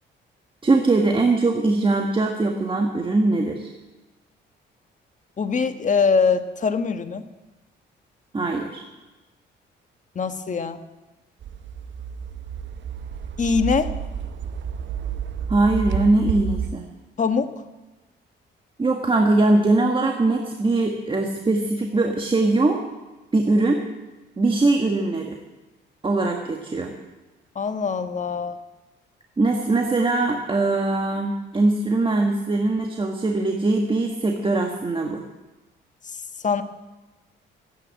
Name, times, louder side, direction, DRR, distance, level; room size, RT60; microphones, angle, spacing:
voice 1, 0.6-3.7 8.3-8.8 15.5-16.8 18.8-22.8 23.3-23.8 24.4-25.4 26.0-26.9 29.4-35.2, right 2 dB, 25° right, 2 dB, 1.7 m, -21 dB
voice 2, 5.4-7.3 10.1-10.8 13.4-13.9 17.2-17.5 27.5-28.6 36.1-36.6, left 5 dB, 40° left, 8 dB, 1.4 m, -23 dB
sound 1, 11.4-16.7, right 7 dB, 65° right, 1.1 m, -30 dB
16.0 x 9.7 x 8.6 m, 1.1 s
cardioid pair, 90°, 20 cm